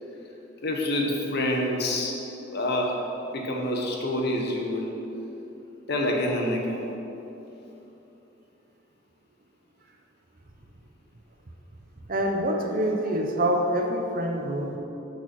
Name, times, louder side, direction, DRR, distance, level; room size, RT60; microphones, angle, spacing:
voice 1, 0.6-2.2 2.5-3.0 3.3-4.9 5.9-6.8, left 1 dB, 55° left, 0 dB, 1.1 m, -27 dB
voice 2, 12.1-14.8, right 1 dB, 45° right, 2 dB, 0.9 m, -26 dB
6.7 x 6.5 x 6.1 m, 3.0 s
head